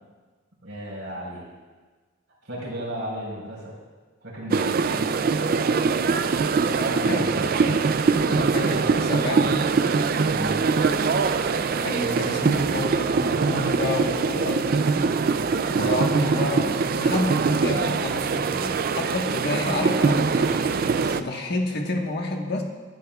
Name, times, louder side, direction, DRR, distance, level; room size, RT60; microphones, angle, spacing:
voice 1, 0.6-1.4 2.4-3.7 4.2-5.1 5.4-5.9 6.8-7.8 8.6-9.0 10.2-10.6 15.7-16.1, right 1 dB, 60° right, -4 dB, 4.4 m, -35 dB
sound 1, 4.5-21.2, right 4 dB, 45° right, 0.4 m, -23 dB
voice 2, 6.7-7.3 8.2-9.7 11.8-15.3 15.7-22.6, left 2 dB, 50° left, 1 dB, 1.4 m, -30 dB
sound 2, 7.3-9.9 12.5-14.8, right 1 dB, 75° right, 1.6 m, -42 dB
22.5 x 11.0 x 2.4 m, 1.4 s
head